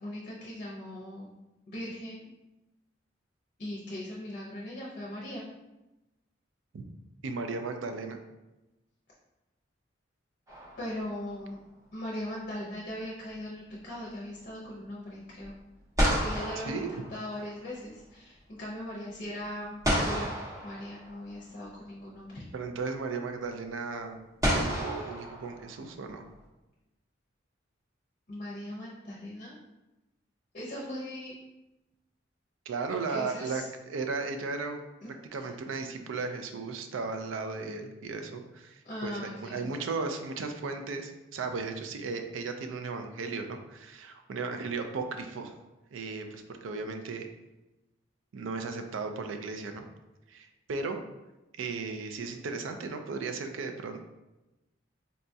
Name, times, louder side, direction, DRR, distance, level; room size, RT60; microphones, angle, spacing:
voice 1, 0.0-1.3 1.7-2.3 3.6-5.4 10.8-11.6 11.9-15.5 16.1-20.3 20.6-22.4 28.3-29.6 30.5-31.4 32.9-33.7 35.4-35.5 38.8-39.7, left 1 dB, 45° left, -4 dB, 0.6 m, -39 dB
voice 2, 7.2-8.2 16.7-16.9 22.5-24.2 24.5-26.2 32.7-34.8 35.3-45.5 45.9-47.3 48.3-49.9 50.3-51.0 51.6-54.0, right 4 dB, 80° right, 6 dB, 0.4 m, -35 dB
sound 1, 10.5-11.4 15.4-15.5 16.0-17.7 19.8-21.4 22.8-22.9 24.4-26.1, equal, 15° right, 0.7 m, -31 dB
4.0 x 2.3 x 2.6 m, 1.0 s
head